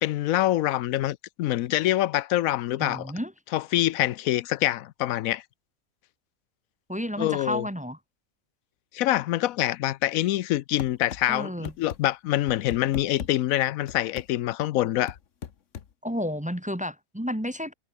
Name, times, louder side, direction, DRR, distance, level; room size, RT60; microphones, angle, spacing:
voice 1, 0.0-3.1 3.5-5.4 7.2-7.7 8.9-15.1, left 14 dB, 85° left, 1.0 m, -25 dB
voice 2, 2.8-3.3 6.9-8.0 11.3-11.7 16.0-17.7, equal, 5° right, 1.2 m, -31 dB
sound 1, 10.8-11.2 11.7-12.0 12.5-13.3 13.9-14.3 15.1-15.9, left 8 dB, 65° left, 1.4 m, -36 dB
omnidirectional pair, 1.4 m